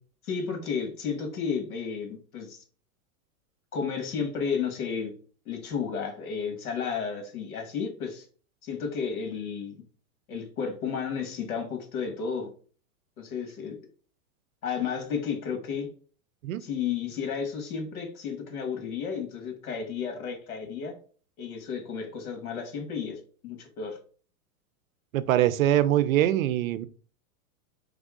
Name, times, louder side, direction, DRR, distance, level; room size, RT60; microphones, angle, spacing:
voice 1, 0.2-2.6 3.7-5.1 5.5-8.3 8.6-9.8 10.3-12.5 13.2-13.8 14.6-15.9 16.6-20.9 21.4-24.0, left 6 dB, 85° left, 4 dB, 1.8 m, -32 dB
voice 2, 25.1-26.9, right 12 dB, 70° right, 15 dB, 0.6 m, -23 dB
3.6 x 3.5 x 3.7 m, 0.41 s
supercardioid pair, 155°, 43 cm